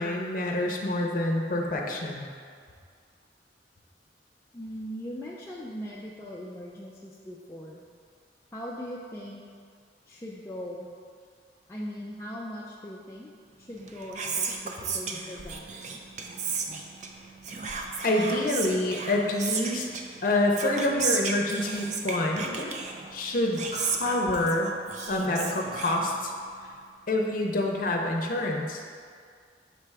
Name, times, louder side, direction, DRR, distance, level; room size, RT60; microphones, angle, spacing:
voice 1, 0.0-2.3 18.0-19.9 20.2-22.8 23.1-24.7 25.1-26.3 27.1-28.8, left 1 dB, 50° left, 0 dB, 0.7 m, -27 dB
voice 2, 4.5-7.8 8.5-9.4 10.1-10.9 11.7-13.3 13.6-15.7, equal, 15° left, -5 dB, 0.4 m, -40 dB
Whispering, 13.7-26.6, right 5 dB, 45° right, 0.5 m, -34 dB
6.7 x 3.3 x 4.7 m, 2.1 s
head